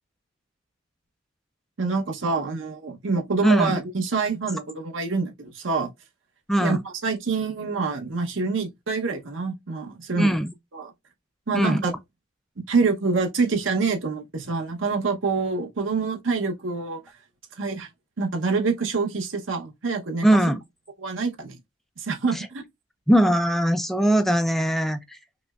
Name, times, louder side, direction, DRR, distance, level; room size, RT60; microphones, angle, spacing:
voice 1, 1.8-5.9 6.6-6.8 7.0-10.4 10.7-10.9 11.5-11.9 12.7-17.0 17.6-17.9 18.2-20.3 21.0-21.6 22.0-22.6, right 4 dB, 90° right, 0.9 m, -26 dB
voice 2, 3.4-3.8 6.5-6.8 10.2-10.5 11.5-11.9 20.2-20.6 22.3-22.5 23.1-25.2, right 1 dB, ahead, 0.3 m, -20 dB
5.0 x 2.1 x 2.3 m
head